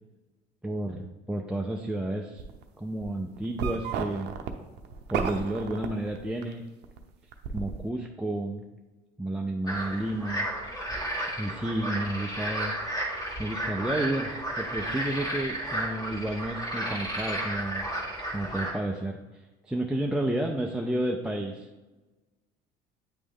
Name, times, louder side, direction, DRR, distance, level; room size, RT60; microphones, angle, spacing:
voice 1, 0.6-2.4 2.8-4.3 5.1-6.6 7.5-8.6 9.2-10.4 11.4-12.7 13.4-17.9 18.3-19.2 19.6-21.7, right 1 dB, 5° right, 2 dB, 0.5 m, -31 dB
sound 1, 2.4-2.6 3.0-6.5 6.8-7.8, right 6 dB, 65° right, 0.7 m, -32 dB
sound 2, 9.7-18.7, right 1 dB, 20° left, 1.8 m, -33 dB
8.8 x 3.2 x 3.6 m, 1.2 s
supercardioid pair, 90°, 19 cm